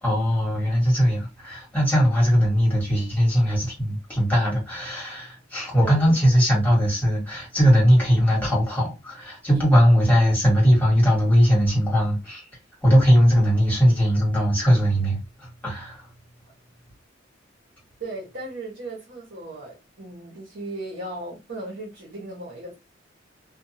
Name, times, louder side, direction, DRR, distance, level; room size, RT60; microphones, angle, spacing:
voice 1, 0.0-12.4 12.8-16.0, equal, 10° left, 1.5 m, -20 dB
voice 2, 5.7-6.2 9.7-9.9 13.6-13.7 18.0-22.7, right 2 dB, 60° right, 1.1 m, -36 dB
2.6 x 2.3 x 2.7 m
head